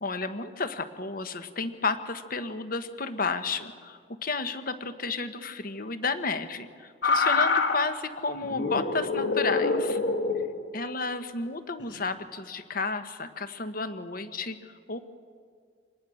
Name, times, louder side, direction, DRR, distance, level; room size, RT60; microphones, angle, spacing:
voice 1, 0.0-10.0 10.7-15.0, left 4 dB, 55° left, 10 dB, 1.2 m, -32 dB
sound 1, 7.0-7.9 8.4-10.6 11.8-12.0, left 4 dB, 75° left, 1.7 m, -26 dB
26.0 x 19.5 x 6.4 m, 2.1 s
head